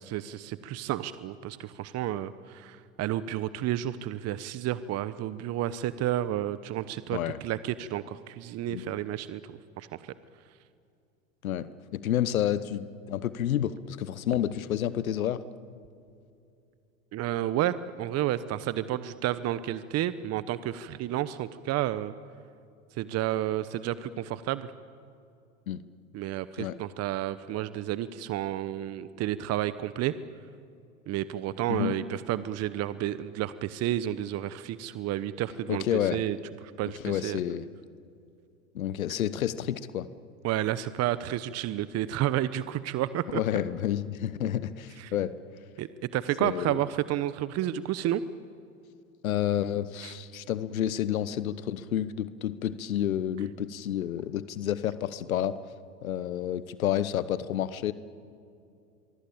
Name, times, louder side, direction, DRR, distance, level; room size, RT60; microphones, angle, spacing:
voice 1, 0.0-10.1 17.1-22.1 23.0-24.7 26.1-30.1 31.1-36.4 36.6-37.4 40.4-43.4 45.0-45.1 45.8-48.2 50.0-50.1, right 13 dB, 40° right, 14 dB, 1.0 m, -31 dB
voice 2, 11.9-15.4 25.7-25.8 26.6-26.7 31.7-32.0 35.7-36.2 37.0-37.7 38.7-40.1 43.3-45.3 46.4-46.8 49.2-55.5 56.0-57.9, left 11 dB, 80° left, 15 dB, 1.1 m, -29 dB
24.5 x 23.5 x 8.7 m, 2.6 s
hypercardioid pair, 95°, 41 cm